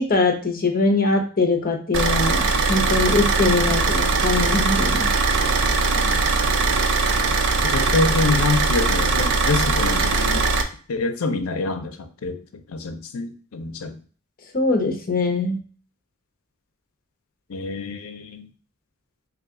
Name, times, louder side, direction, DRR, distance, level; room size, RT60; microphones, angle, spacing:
voice 1, 0.0-2.4 2.7-5.1 14.5-15.6, left 3 dB, 40° left, 3 dB, 0.7 m, -22 dB
Car / Idling, 1.9-10.6, right 3 dB, 60° right, 0.5 m, -20 dB
voice 2, 5.9-6.3 7.6-10.4 10.9-12.4 12.7-14.0 17.5-18.5, left 3 dB, 80° left, 8 dB, 0.5 m, -26 dB
3.5 x 2.3 x 3.5 m, 0.40 s
head